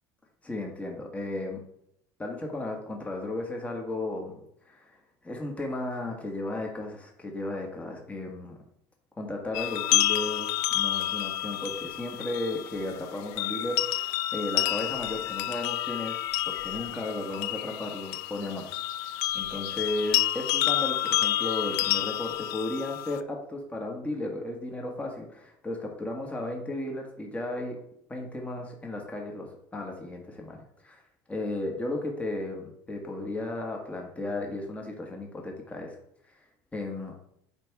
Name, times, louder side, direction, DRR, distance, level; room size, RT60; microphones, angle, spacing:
voice 1, 0.4-1.6 2.2-4.4 4.6-5.0 5.2-8.6 9.2-18.8 19.3-27.8 28.1-31.0 31.3-36.0 36.7-37.1, left 2 dB, 15° left, 1 dB, 1.4 m, -34 dB
sound 1, 9.5-23.2, left 14 dB, 85° left, 0.4 m, -29 dB
8.9 x 3.4 x 4.7 m, 0.74 s
cardioid pair, 130°, 10 cm